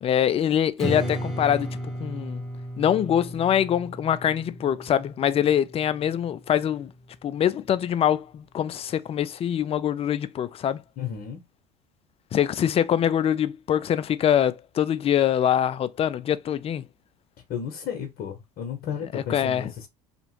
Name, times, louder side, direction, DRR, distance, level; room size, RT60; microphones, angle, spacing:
voice 1, 0.0-2.4 2.8-6.9 7.2-10.8 12.3-16.8 19.1-19.7, left 9 dB, 35° left, 0.4 m, -24 dB
Strum, 0.8-6.0, right 1 dB, ahead, 1.3 m, -34 dB
voice 2, 11.0-11.4 17.5-19.9, left 8 dB, 55° left, 0.9 m, -33 dB
2.8 x 2.4 x 3.0 m
hypercardioid pair, 70°, 19 cm